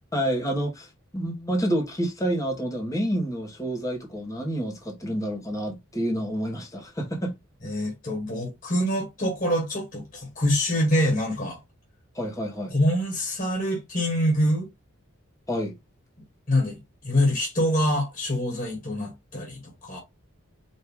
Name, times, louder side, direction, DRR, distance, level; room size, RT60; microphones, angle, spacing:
voice 1, 0.1-7.3 12.1-12.7 15.5-15.7, equal, 15° left, 1.1 m, -28 dB
voice 2, 7.6-11.6 12.7-14.7 16.5-20.0, equal, 40° left, 1.7 m, -25 dB
4.5 x 2.7 x 3.6 m
head